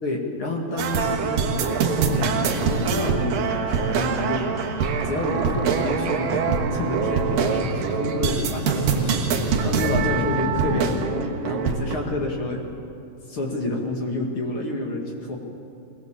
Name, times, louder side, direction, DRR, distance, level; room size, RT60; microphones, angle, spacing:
voice 1, 0.0-4.5 5.0-12.6 13.3-15.4, left 2 dB, 40° left, 0 dB, 2.7 m, -29 dB
sound 1, 0.8-12.0, right 6 dB, 75° right, 3.0 m, -24 dB
Boat Water vehicle, 2.1-11.1, left 10 dB, 75° left, 1.9 m, -35 dB
21.5 x 19.0 x 7.6 m, 2.7 s
omnidirectional pair, 4.1 m